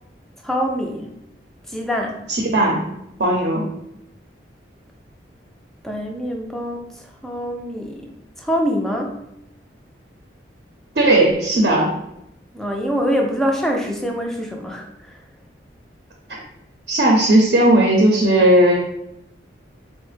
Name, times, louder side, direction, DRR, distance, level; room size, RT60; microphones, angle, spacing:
voice 1, 0.4-1.1 1.7-2.2 5.8-6.9 7.2-8.1 8.4-9.2 12.5-15.2, equal, ahead, 1 dB, 0.3 m, -24 dB
voice 2, 2.3-2.8 3.2-3.7 11.0-11.9 16.3-16.4 16.9-18.8, right 1 dB, 60° right, -1 dB, 0.5 m, -16 dB
3.8 x 2.1 x 3.2 m, 0.82 s
head